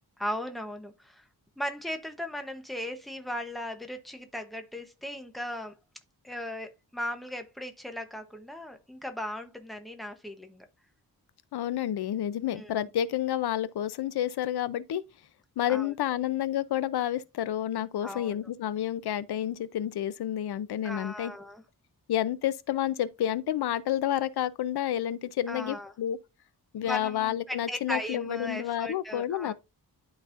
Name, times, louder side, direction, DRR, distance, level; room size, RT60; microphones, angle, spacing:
voice 1, 0.2-1.2 1.6-5.8 6.2-10.7 12.5-12.7 15.7-16.2 18.0-18.4 20.8-21.6 25.5-25.9 26.8-29.5, left 1 dB, ahead, 0.8 m, -37 dB
voice 2, 11.5-15.0 15.6-21.3 22.1-26.2 26.7-29.5, left 11 dB, 90° left, 0.6 m, -30 dB
11.5 x 4.0 x 2.5 m
wide cardioid pair, 160°, 37 cm